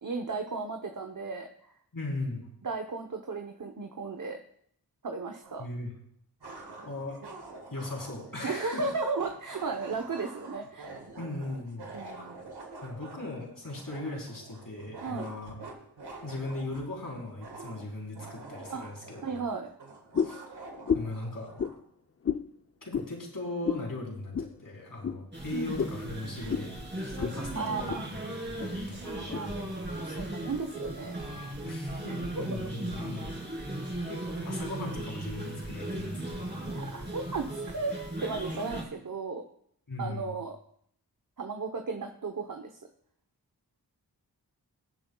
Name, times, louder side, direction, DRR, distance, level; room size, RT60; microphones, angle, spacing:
voice 1, 0.0-1.5 2.6-4.4 5.0-5.6 8.4-10.9 11.9-12.4 15.0-15.3 18.7-18.8 19.2-19.7 25.5-25.8 27.5-28.0 29.0-31.2 32.1-32.5 36.7-39.4 40.0-40.6 41.4-42.8, right 4 dB, 50° right, 4 dB, 1.0 m, -35 dB
voice 2, 1.9-2.5 5.6-5.9 6.8-7.2 7.7-8.8 11.2-11.9 12.8-15.6 16.2-19.5 20.2-20.4 20.9-21.5 22.8-26.7 27.0-29.8 31.6-33.3 34.1-36.5 39.9-40.3, left 2 dB, 55° left, -2 dB, 3.8 m, -38 dB
sound 1, 5.4-5.5 6.4-21.8, right 3 dB, 85° right, 1.7 m, -47 dB
sound 2, 20.1-20.4 20.9-21.2 21.6-21.8 22.2-22.5 22.9-23.1 23.6-23.9 24.3-24.5 25.0-25.2 25.8-26.0 26.5-26.7 27.2-27.4 27.7-28.0 28.6-28.7 29.3-29.4, left 7 dB, 35° left, 0.5 m, -30 dB
sound 3, 25.3-38.8, right 1 dB, 25° right, 3.5 m, -37 dB
20.0 x 7.7 x 2.3 m, 0.67 s
cardioid pair, 45°, 39 cm